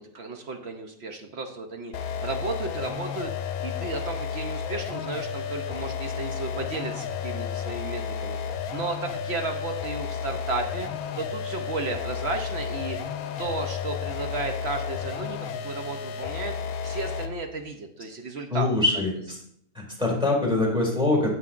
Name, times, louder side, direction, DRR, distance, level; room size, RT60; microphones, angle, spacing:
voice 1, 0.0-10.9 11.2-13.0 13.4-16.5 16.8-18.7, right 3 dB, 55° right, 5 dB, 0.8 m, -34 dB
sound 1, 1.9-17.4, left 7 dB, 70° left, 0.9 m, -32 dB
voice 2, 18.5-19.4 19.7-21.3, left 2 dB, 5° right, -2 dB, 2.2 m, -24 dB
9.4 x 7.7 x 2.4 m, 0.69 s
omnidirectional pair, 1.5 m